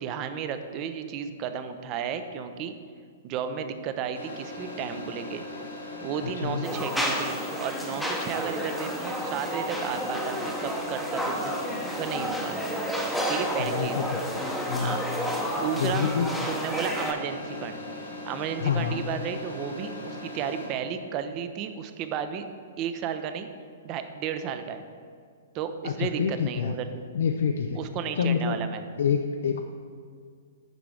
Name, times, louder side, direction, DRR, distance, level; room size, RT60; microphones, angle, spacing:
voice 1, 0.0-2.7 3.2-5.4 6.0-11.6 12.0-12.9 13.3-14.0 14.8-15.0 15.6-16.1 16.5-17.8 18.3-22.5 22.8-23.5 23.8-24.8 25.5-27.1 27.7-28.8, right 8 dB, 35° right, 9 dB, 0.5 m, -33 dB
sound 1, 4.1-20.7, left 2 dB, 90° left, 1.8 m, -39 dB
voice 2, 6.2-6.6 13.6-14.4 14.7-15.0 15.8-16.3 18.6-19.0 25.8-26.7 27.1-27.8 28.2-28.6 29.0-29.6, left 7 dB, 65° left, 6 dB, 0.4 m, -27 dB
sound 2, 6.6-17.1, equal, ahead, 0.8 m, -31 dB
9.0 x 5.9 x 3.4 m, 2.1 s
figure-of-eight pair, 115°, 0 cm